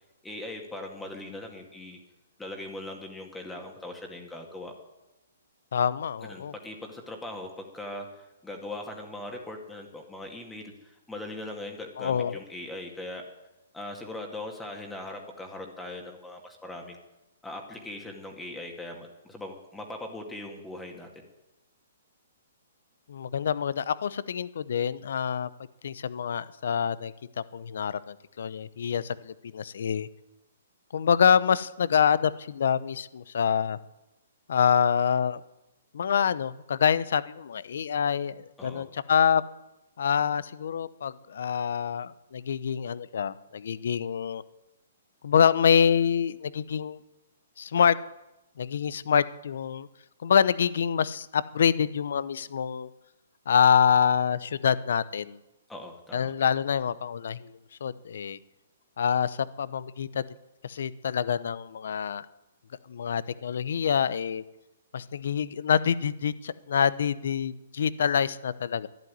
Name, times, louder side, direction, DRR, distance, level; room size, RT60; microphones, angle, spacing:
voice 1, 0.2-2.0 2.4-4.7 6.2-13.2 13.7-17.0 17.4-21.1 38.6-38.8 55.7-56.3, left 1 dB, 5° left, 2 dB, 2.0 m, -40 dB
voice 2, 5.7-6.5 12.0-12.4 23.1-25.5 25.8-30.1 30.9-33.8 34.5-35.4 35.9-39.5 40.0-44.4 45.2-47.0 47.6-48.0 48.6-49.9 50.2-52.9 53.5-55.4 56.1-57.5 57.8-58.4 59.0-60.2 60.6-62.3 62.9-64.4 64.9-68.9, left 7 dB, 70° left, 18 dB, 0.8 m, -26 dB
12.0 x 11.0 x 9.5 m, 0.97 s
hypercardioid pair, 145°, 0 cm